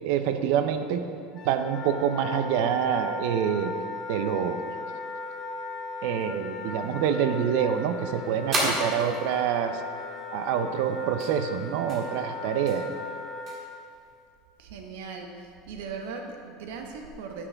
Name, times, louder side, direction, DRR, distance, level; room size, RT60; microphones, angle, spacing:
voice 1, 0.0-1.0 1.4-3.7 4.1-4.6 6.0-9.8 10.3-12.9, right 8 dB, 65° right, 8 dB, 0.5 m, -26 dB
Wind instrument woodwind instrument, 1.3-13.5, left 3 dB, 35° left, 0.8 m, -37 dB
sound 1, 5.2-14.2, right 1 dB, 30° right, 1.8 m, -37 dB
voice 2, 14.6-17.5, right 5 dB, 80° right, 3 dB, 1.0 m, -39 dB
9.3 x 6.0 x 3.4 m, 2.3 s
supercardioid pair, 145°, 0 cm